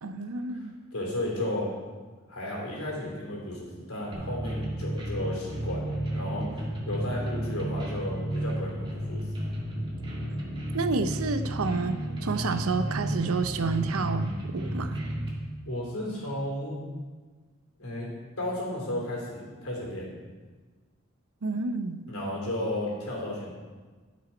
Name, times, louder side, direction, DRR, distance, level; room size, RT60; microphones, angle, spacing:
voice 1, 0.0-0.7 10.7-15.0 21.4-22.0, right 4 dB, 80° right, 9 dB, 0.7 m, -30 dB
voice 2, 0.5-1.7 2.3-5.9 6.1-9.3 15.6-16.8 17.8-18.1 18.4-20.1 22.1-23.5, left 1 dB, 80° left, -3 dB, 3.4 m, -33 dB
sound 1, 4.1-15.3, right 1 dB, 25° right, 2.1 m, -32 dB
14.0 x 6.4 x 4.4 m, 1.4 s
head